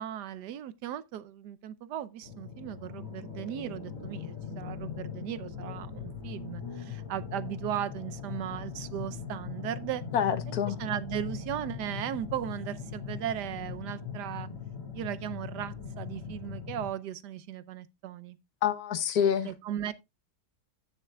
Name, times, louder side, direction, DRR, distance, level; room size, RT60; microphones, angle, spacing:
voice 1, 0.0-10.0 10.5-14.5 14.9-18.4 19.4-19.9, right 11 dB, 75° right, 1.2 m, -37 dB
low revers reverbs, 2.2-16.9, left 6 dB, 45° left, 3.2 m, -40 dB
voice 2, 10.1-10.8 18.6-19.5, left 8 dB, 65° left, 1.3 m, -27 dB
16.5 x 6.6 x 2.3 m
omnidirectional pair, 1.9 m